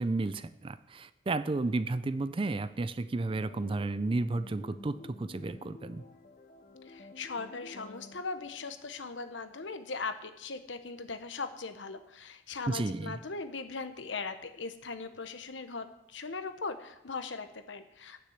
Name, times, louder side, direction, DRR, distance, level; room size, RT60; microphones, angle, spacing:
voice 1, 0.0-6.0 12.7-13.2, right 2 dB, 30° right, 14 dB, 0.4 m, -32 dB
sound 1, 3.3-9.7, left 2 dB, 45° left, 0.7 m, -52 dB
voice 2, 6.9-18.2, left 4 dB, 75° left, 9 dB, 1.0 m, -39 dB
9.7 x 6.8 x 8.0 m, 0.85 s
head